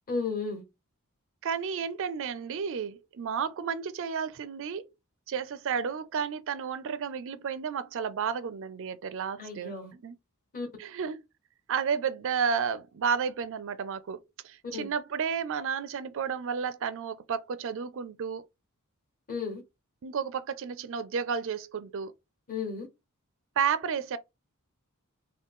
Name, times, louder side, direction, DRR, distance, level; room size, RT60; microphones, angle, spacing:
voice 1, 0.1-0.6 9.4-9.9 10.5-10.7 14.7-14.9 19.3-19.6 22.5-22.9, left 4 dB, 40° left, 2.0 m, -33 dB
voice 2, 1.4-4.9 5.3-10.2 10.8-11.2 11.7-18.4 20.0-22.1 23.6-24.2, right 6 dB, 60° right, 0.4 m, -32 dB
3.7 x 2.3 x 3.6 m
head